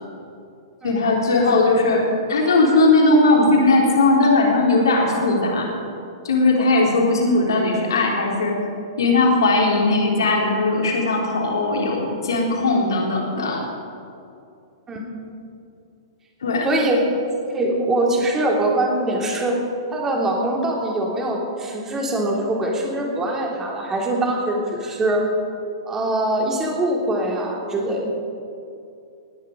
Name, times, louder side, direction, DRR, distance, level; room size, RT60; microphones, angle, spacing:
voice 1, 0.8-2.0 2.3-5.7 6.2-8.6 9.0-13.6 16.4-16.7, left 2 dB, 70° left, -2 dB, 3.7 m, -18 dB
voice 2, 16.6-17.0 17.5-19.6 19.9-25.2 25.8-28.0, right 1 dB, 20° right, -1 dB, 3.1 m, -23 dB
19.0 x 10.5 x 5.3 m, 2.6 s
figure-of-eight pair, 105°, 2 cm